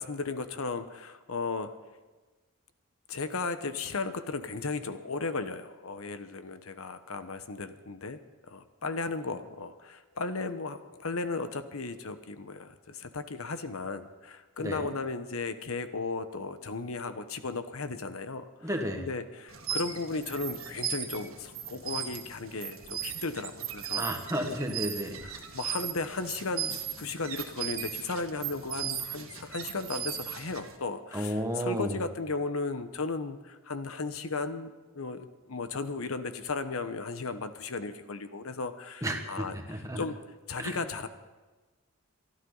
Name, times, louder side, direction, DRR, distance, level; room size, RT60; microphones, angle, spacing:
voice 1, 0.0-1.7 3.1-8.2 8.5-18.7 19.0-24.1 24.5-24.6 25.2-34.7 34.9-40.2 40.5-41.1, left 3 dB, 85° left, 10 dB, 1.0 m, -35 dB
voice 2, 14.6-14.9 18.6-19.1 23.9-25.2 31.1-32.0 39.0-40.0 40.6-40.7, equal, 15° right, 3 dB, 1.5 m, -32 dB
sound 1, 19.5-30.8, right 9 dB, 80° right, 1.8 m, -37 dB
24.0 x 13.0 x 4.0 m, 1.2 s
head